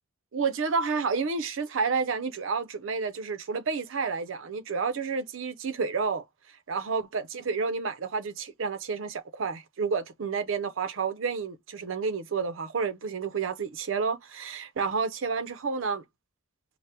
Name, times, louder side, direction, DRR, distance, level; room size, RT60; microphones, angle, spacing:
voice 1, 0.3-6.2 6.7-16.0, right 5 dB, 85° right, 0.5 m, -30 dB
4.3 x 2.0 x 3.3 m
head